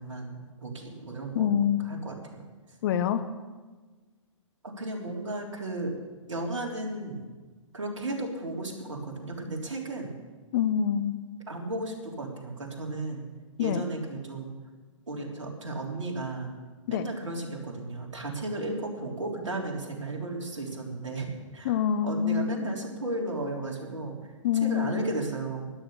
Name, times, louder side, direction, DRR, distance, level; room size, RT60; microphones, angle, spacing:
voice 1, 0.0-1.5 1.9-2.4 4.6-5.9 6.3-7.3 7.7-10.1 11.5-13.2 13.6-14.5 15.1-16.5 16.9-21.3 21.5-21.7 22.0-24.3 24.6-25.7, right 2 dB, 70° right, 0 dB, 3.5 m, -34 dB
voice 2, 1.3-1.9 2.8-3.2 10.5-11.1 13.6-13.8 16.9-17.1 21.6-22.7 24.4-25.0, left 8 dB, 40° left, 11 dB, 0.9 m, -26 dB
12.5 x 11.0 x 6.9 m, 1.3 s
figure-of-eight pair, 120°, 17 cm